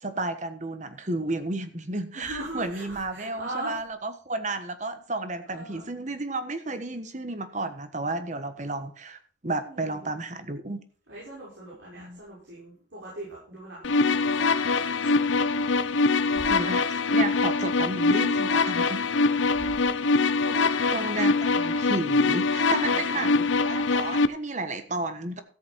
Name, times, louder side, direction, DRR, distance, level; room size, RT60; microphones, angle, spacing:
voice 1, 0.0-10.8 12.0-12.2 16.3-19.1 20.4-20.5 20.9-25.4, right 2 dB, 40° right, 9 dB, 1.3 m, -32 dB
voice 2, 2.1-3.7 5.4-5.9 9.7-10.1 11.1-15.2 15.9-16.5 19.5-19.8 20.2-20.7 22.8-23.3, right 1 dB, 85° right, -6 dB, 6.1 m, -41 dB
sound 1, 13.8-24.3, left 3 dB, 90° left, 0.7 m, -23 dB
13.5 x 8.2 x 4.5 m, 0.43 s
head